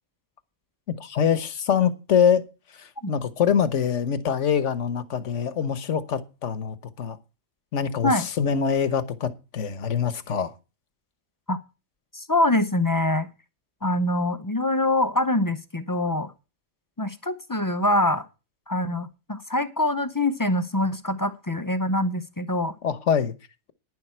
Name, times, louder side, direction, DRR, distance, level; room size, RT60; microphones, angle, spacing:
voice 1, 0.9-2.5 2.7-7.2 7.7-10.5 22.8-23.3, left 7 dB, 60° left, 1.3 m, -24 dB
voice 2, 12.1-13.3 13.8-16.3 17.0-18.2 18.7-22.7, left 1 dB, 25° left, 0.5 m, -24 dB
11.0 x 10.5 x 4.4 m
omnidirectional pair, 1.4 m